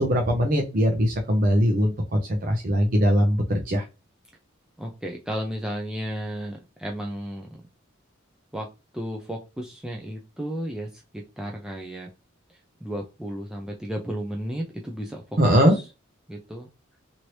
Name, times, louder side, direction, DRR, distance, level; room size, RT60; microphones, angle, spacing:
voice 1, 0.0-3.8 15.4-15.8, equal, 40° right, 0.6 m, -21 dB
voice 2, 4.8-7.6 8.5-8.7 8.9-11.0 11.4-12.1 12.5-15.2 15.6-15.8 16.3-16.7, equal, 5° right, 0.3 m, -33 dB
3.0 x 2.6 x 3.0 m
head